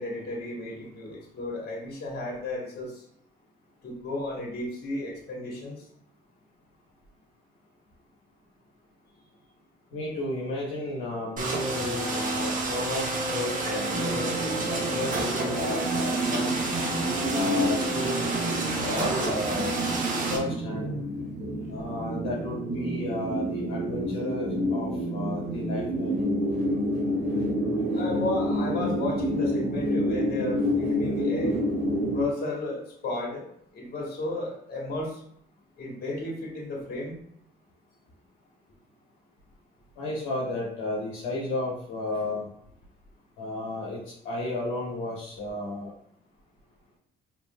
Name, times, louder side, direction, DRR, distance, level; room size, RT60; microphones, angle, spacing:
voice 1, 0.0-3.1 3.8-5.9 9.3-9.4 27.9-31.6 32.1-33.5 33.7-35.2 35.8-37.1, left 2 dB, 55° left, -2 dB, 1.7 m, -33 dB
voice 2, 9.9-16.7 17.3-18.6 18.8-19.7 20.3-21.0 21.7-26.2 40.0-42.5 43.4-45.9, left 2 dB, 80° left, -5 dB, 1.3 m, -33 dB
sound 1, 11.4-20.4, right 2 dB, 45° right, 1.1 m, -29 dB
sound 2, 13.9-32.2, equal, 85° right, 1.3 m, -29 dB
4.9 x 3.3 x 2.5 m, 0.68 s
supercardioid pair, 75°, 19 cm